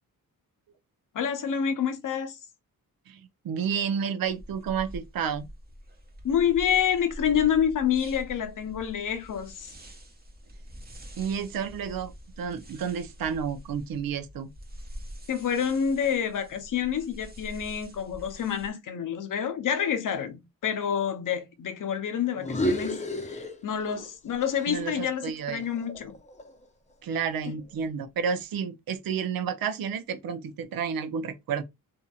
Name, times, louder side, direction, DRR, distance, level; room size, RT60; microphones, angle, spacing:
voice 1, 1.1-2.4 6.2-9.7 15.3-26.1, left 8 dB, 60° left, 0.7 m, -28 dB
voice 2, 3.1-5.5 11.2-12.1 12.4-14.5 24.7-25.6 27.0-31.6, right 7 dB, 70° right, 0.6 m, -31 dB
sound 1, 4.3-18.7, equal, 25° right, 0.9 m, -45 dB
sound 2, 22.4-24.1 24.4-26.6, left 1 dB, 20° left, 0.7 m, -33 dB
2.8 x 2.7 x 2.3 m
cardioid pair, 65°, 36 cm